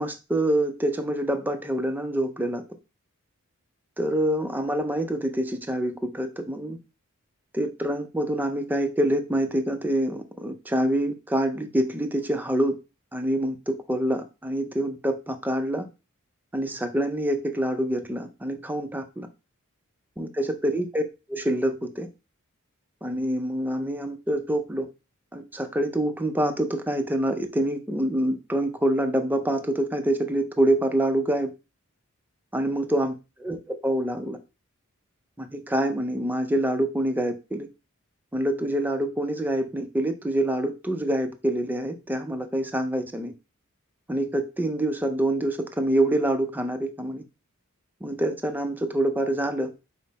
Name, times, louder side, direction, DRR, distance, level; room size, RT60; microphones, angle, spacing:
voice 1, 0.0-2.6 4.0-6.8 7.5-12.7 13.1-15.9 16.5-19.3 20.2-21.0 21.3-22.1 23.0-24.9 25.3-31.5 32.5-33.1 33.4-33.6 33.8-34.4 35.4-37.7 38.3-43.3 44.1-47.2 48.0-49.7, right 1 dB, 10° right, 0.4 m, -26 dB
5.3 x 2.0 x 4.0 m
head